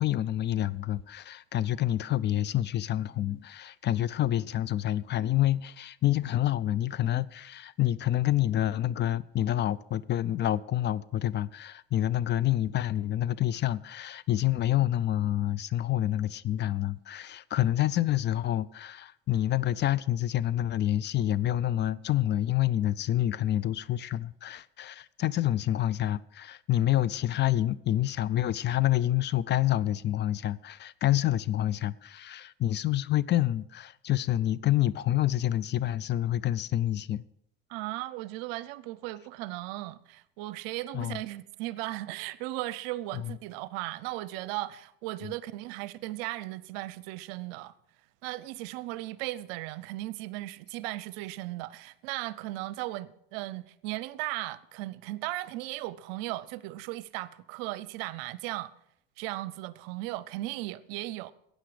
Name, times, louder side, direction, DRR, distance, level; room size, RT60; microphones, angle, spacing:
voice 1, 0.0-37.2 40.9-41.2 43.2-43.3 45.2-45.3, left 13 dB, 40° left, 0.4 m, -28 dB
voice 2, 37.7-47.7 48.2-58.7 59.2-61.3, right 17 dB, 80° right, 0.6 m, -37 dB
13.0 x 8.9 x 4.9 m
supercardioid pair, 100°, 29 cm